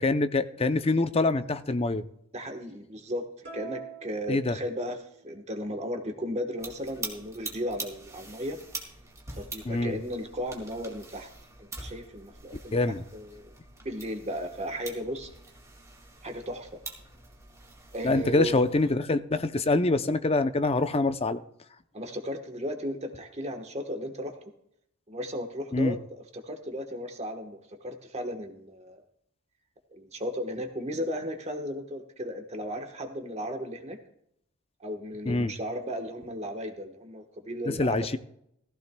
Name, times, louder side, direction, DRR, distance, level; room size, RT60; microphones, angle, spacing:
voice 1, 0.0-2.0 4.3-4.6 9.6-10.0 12.7-13.0 18.0-21.4 25.7-26.0 35.3-35.5 37.8-38.2, left 2 dB, 30° left, 10 dB, 0.6 m, -25 dB
voice 2, 2.3-8.6 9.3-11.3 11.6-13.5 13.8-15.3 16.2-16.8 17.9-18.6 21.9-24.5 25.1-29.0 29.9-34.0 34.8-38.2, equal, 30° right, 4 dB, 1.2 m, -35 dB
sound 1, 3.4-5.2, right 5 dB, 55° right, 1.9 m, -45 dB
sound 2, 6.6-19.0, right 3 dB, 15° right, 2.2 m, -44 dB
17.0 x 15.0 x 2.3 m, 0.74 s
head